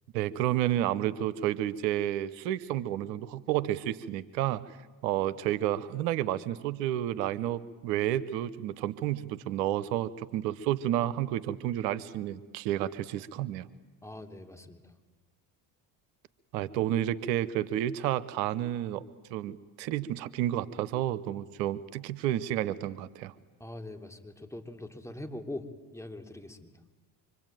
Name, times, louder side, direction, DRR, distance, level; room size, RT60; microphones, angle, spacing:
voice 1, 0.1-4.8 5.0-13.7 16.5-19.0 19.3-23.3, right 12 dB, 85° right, 17 dB, 1.1 m, -31 dB
voice 2, 14.0-14.9 23.6-25.7 25.9-26.7, left 1 dB, 5° left, 5 dB, 3.4 m, -42 dB
25.5 x 25.0 x 9.1 m, 1.2 s
supercardioid pair, 70°, 50 cm